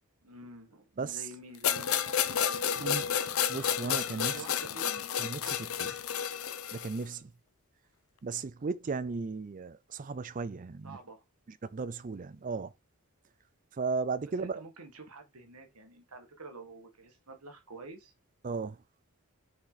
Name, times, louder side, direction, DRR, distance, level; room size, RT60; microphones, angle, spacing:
voice 1, 0.2-3.3 4.2-5.0 10.8-11.2 14.4-18.1, right 2 dB, 80° right, 1.8 m, -48 dB
sound 1, 1.6-7.0, left 9 dB, 70° left, 0.7 m, -31 dB
voice 2, 3.5-4.4 5.2-5.9 6.7-7.3 8.2-11.0 11.7-12.7 13.8-14.6 18.4-18.8, right 4 dB, 35° right, 0.4 m, -35 dB
6.1 x 5.0 x 4.1 m
head